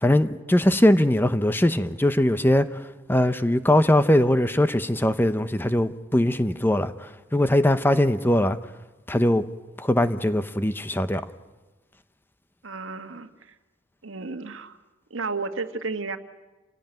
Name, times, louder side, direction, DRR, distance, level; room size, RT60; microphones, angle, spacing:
voice 1, 0.0-8.6 9.1-9.5 9.8-11.2, left 1 dB, 10° left, 0.7 m, -21 dB
voice 2, 12.6-13.3 14.0-14.8 15.1-16.2, right 4 dB, 80° right, 1.5 m, -32 dB
28.0 x 16.5 x 9.0 m
head